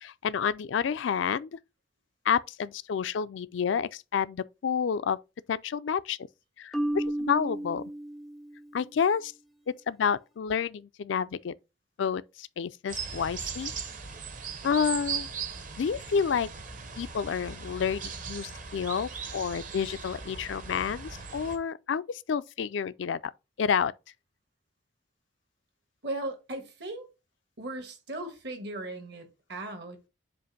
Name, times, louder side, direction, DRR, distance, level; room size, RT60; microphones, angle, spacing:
voice 1, 0.0-1.6 2.3-5.2 5.5-6.2 6.6-7.8 8.7-9.3 9.7-11.5 12.0-13.7 14.6-15.3 15.8-16.5 17.0-23.2 23.6-23.9, left 7 dB, 70° left, 0.4 m, -29 dB
Marimba xylophone, 6.7-8.8, right 1 dB, ahead, 0.3 m, -33 dB
sound 1, 12.9-21.6, right 6 dB, 40° right, 0.9 m, -38 dB
voice 2, 26.0-27.1 27.6-30.0, right 2 dB, 60° right, 1.5 m, -37 dB
7.6 x 2.6 x 5.2 m
head